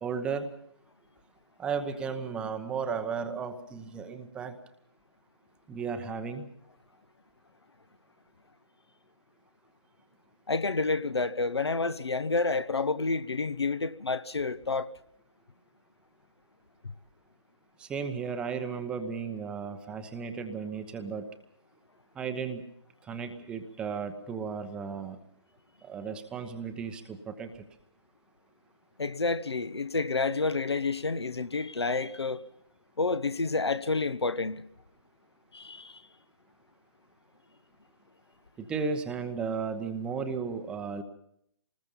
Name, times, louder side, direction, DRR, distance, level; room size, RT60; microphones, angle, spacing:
voice 1, 0.0-0.5 1.6-4.6 5.7-6.5 17.8-21.2 22.2-22.6 23.1-25.2 25.8-27.5 38.6-41.0, right 5 dB, 5° right, 0.9 m, -34 dB
voice 2, 10.5-14.9 29.0-32.4 33.0-34.7 35.5-36.0, left 3 dB, 65° left, 1.1 m, -29 dB
25.5 x 20.0 x 5.5 m
figure-of-eight pair, 145°, 15 cm